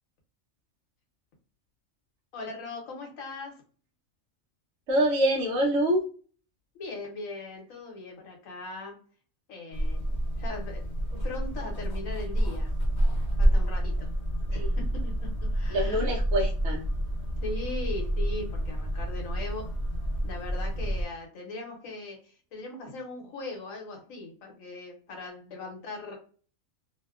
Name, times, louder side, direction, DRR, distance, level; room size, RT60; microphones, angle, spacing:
voice 1, 2.3-3.6 6.7-9.0 9.5-10.8 11.2-12.7 13.4-14.1 14.5-16.1 17.4-19.6 20.2-26.2, left 3 dB, 70° left, 1 dB, 1.1 m, -39 dB
voice 2, 4.9-6.0 15.7-16.8, right 1 dB, 65° right, -2 dB, 0.9 m, -25 dB
sound 1, 9.7-21.0, equal, 45° left, 0.6 m, -28 dB
2.8 x 2.1 x 2.3 m, 0.42 s
omnidirectional pair, 1.5 m